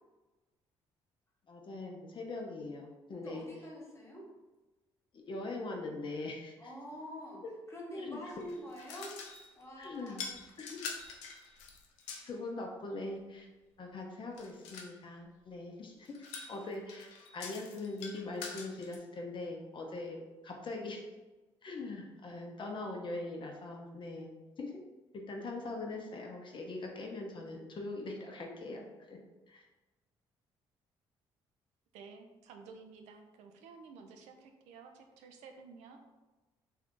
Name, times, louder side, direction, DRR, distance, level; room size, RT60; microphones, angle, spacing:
voice 1, 1.5-3.5 5.1-6.5 7.4-7.5 7.9-8.2 9.8-10.2 10.6-10.8 12.3-13.5 13.8-16.1 16.5-21.0 21.6-24.8 25.1-29.2 29.5-29.6, left 2 dB, 45° left, 1 dB, 0.6 m, -42 dB
voice 2, 3.1-4.3 6.6-9.2 9.6-10.3, equal, 25° left, -3 dB, 1.2 m, -46 dB
sound 1, 8.3-9.6 10.1-12.4 14.3-14.9 16.1-19.0, left 5 dB, 90° left, 0.4 m, -45 dB
voice 3, 31.9-36.0, right 5 dB, 80° right, 4 dB, 0.4 m, -53 dB
2.6 x 2.3 x 3.6 m, 1.1 s
supercardioid pair, 60°, 11 cm